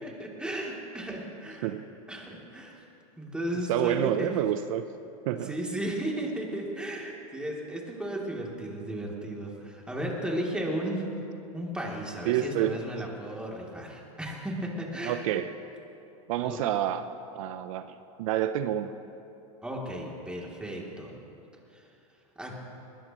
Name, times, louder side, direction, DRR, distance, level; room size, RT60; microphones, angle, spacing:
voice 1, 0.0-1.7 2.1-2.8 3.2-4.3 5.4-11.1 11.5-15.2 16.4-16.6 19.6-21.2 21.7-21.8 22.4-22.5, right 1 dB, 5° right, -2 dB, 3.0 m, -34 dB
voice 2, 3.7-4.8 5.2-5.5 12.3-12.8 15.0-15.5 16.3-17.0 17.3-18.9, right 11 dB, 65° right, 10 dB, 0.7 m, -28 dB
21.0 x 20.5 x 3.1 m, 2.8 s
hypercardioid pair, 120°, 19 cm